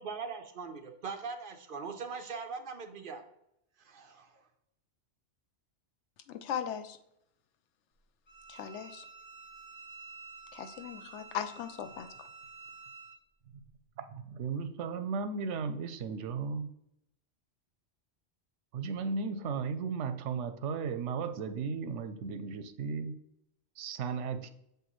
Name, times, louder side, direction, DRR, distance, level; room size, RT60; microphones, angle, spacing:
voice 1, 0.0-3.2 3.8-4.5, right 5 dB, 55° right, 0.8 m, -41 dB
voice 2, 6.3-7.0 8.5-9.0 10.5-12.1, left 9 dB, 80° left, 0.9 m, -38 dB
Bowed string instrument, 8.3-13.2, right 4 dB, 25° left, 0.8 m, -50 dB
voice 3, 14.0-16.7 18.7-23.1 23.8-24.5, right 5 dB, 85° right, 0.9 m, -35 dB
6.7 x 4.6 x 3.0 m
omnidirectional pair, 1.2 m